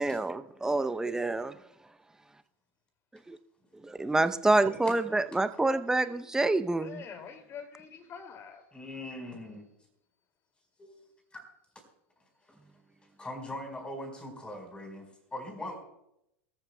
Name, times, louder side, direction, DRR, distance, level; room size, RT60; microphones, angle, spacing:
voice 1, 0.0-1.6 3.3-3.4 3.7-7.0, right 2 dB, 10° right, 0.7 m, -27 dB
voice 2, 5.1-6.2 6.8-8.6, left 6 dB, 40° left, 2.5 m, -47 dB
voice 3, 8.7-9.7 10.8-11.4 12.5-12.6 13.2-15.7, left 1 dB, 15° left, 4.7 m, -41 dB
23.5 x 14.0 x 2.3 m
hypercardioid pair, 90°, 7 cm